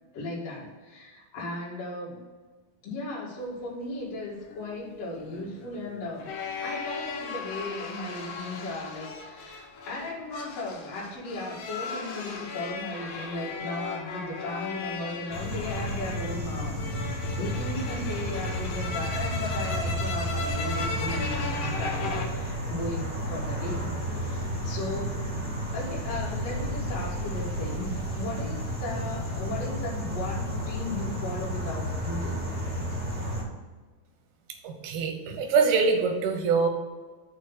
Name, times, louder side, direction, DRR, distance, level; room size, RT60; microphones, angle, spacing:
voice 1, 0.1-2.2 2.8-6.3 6.6-16.8 17.1-25.1 25.7-32.5 33.0-33.3, left 2 dB, 50° left, -6 dB, 2.6 m, -36 dB
sound 1, 4.5-22.3, left 4 dB, 85° left, 1.4 m, -37 dB
sound 2, 15.3-33.4, equal, 10° right, 0.5 m, -32 dB
voice 2, 34.6-36.7, right 5 dB, 90° right, 4 dB, 2.9 m, -24 dB
6.5 x 4.8 x 5.7 m, 1.4 s
omnidirectional pair, 4.2 m